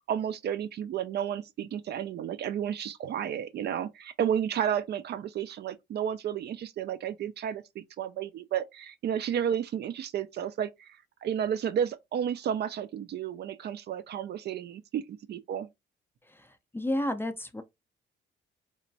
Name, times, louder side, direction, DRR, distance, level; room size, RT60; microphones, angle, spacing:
voice 1, 0.1-15.7, right 9 dB, 55° right, 0.4 m, -32 dB
voice 2, 16.3-17.6, left 1 dB, 10° left, 0.4 m, -32 dB
3.0 x 2.1 x 2.6 m
cardioid pair, 90°, 20 cm